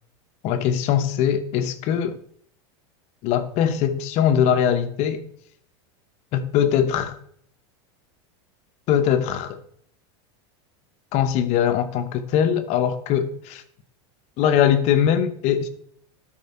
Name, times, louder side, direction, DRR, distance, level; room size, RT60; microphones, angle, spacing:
voice 1, 0.4-2.2 3.2-5.2 6.3-7.2 8.9-9.6 11.1-13.6 14.4-15.7, left 9 dB, 50° left, 1.1 m, -21 dB
12.5 x 4.9 x 4.4 m
supercardioid pair, 130°, 15 cm